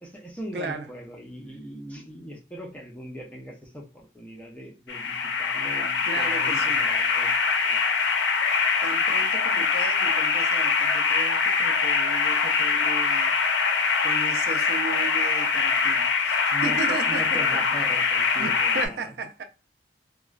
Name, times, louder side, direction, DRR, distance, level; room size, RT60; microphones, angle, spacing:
voice 1, 0.0-7.8 16.5-19.1, equal, 10° left, 0.5 m, -40 dB
voice 2, 0.5-0.9 6.1-6.9 8.8-13.3 14.0-17.6 18.3-19.4, right 4 dB, 65° right, 0.3 m, -35 dB
sound 1, 4.9-18.9, left 5 dB, 80° left, 0.4 m, -23 dB
2.9 x 2.1 x 2.3 m
head